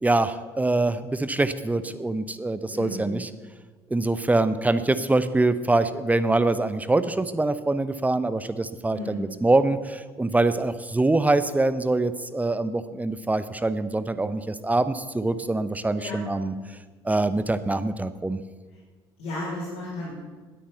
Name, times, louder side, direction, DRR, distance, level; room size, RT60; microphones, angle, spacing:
voice 1, 0.0-3.3 3.9-16.5 17.0-18.4, right 2 dB, 10° right, 13 dB, 0.9 m, -24 dB
voice 2, 2.7-3.1 8.9-9.2 16.0-16.2 19.2-20.1, left 2 dB, 60° left, -8 dB, 5.1 m, -34 dB
19.5 x 8.7 x 5.8 m, 1.4 s
figure-of-eight pair, 55°, 13 cm